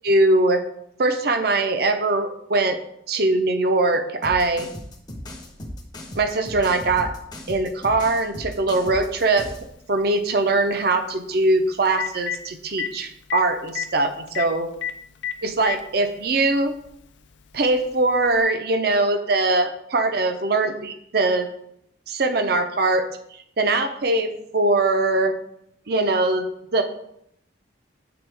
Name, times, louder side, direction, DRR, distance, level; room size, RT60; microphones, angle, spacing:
voice 1, 0.0-0.6 1.0-2.8 3.1-4.7 6.1-7.1 7.5-9.5 9.9-14.7 15.4-16.7 17.5-21.5 22.1-23.1 23.6-25.3 25.9-26.5 26.7-26.8, right 2 dB, 55° right, 7 dB, 0.6 m, -21 dB
sound 1, 4.2-9.7, left 1 dB, 20° left, 0.7 m, -36 dB
Telephone, 9.2-9.3 11.4-11.5 11.8-12.4 12.8-12.9 13.3-13.4 13.7-13.9 14.3-14.5 14.8-14.9 15.2-15.8 16.8-16.9 18.3-18.4, left 10 dB, 70° left, 0.4 m, -27 dB
7.8 x 3.9 x 3.4 m, 0.73 s
head